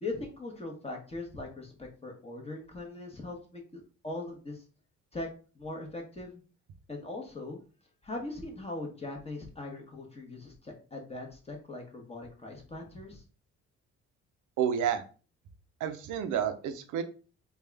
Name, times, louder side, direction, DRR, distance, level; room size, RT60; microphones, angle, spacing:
voice 1, 0.0-4.6 5.1-5.3 5.5-6.4 6.9-7.6 8.0-13.2, left 2 dB, 20° left, 1 dB, 1.1 m, -40 dB
voice 2, 14.6-15.0 15.8-17.0, right 8 dB, 85° right, 8 dB, 0.6 m, -30 dB
3.4 x 2.4 x 3.4 m, 0.36 s
cardioid pair, 90°, 30 cm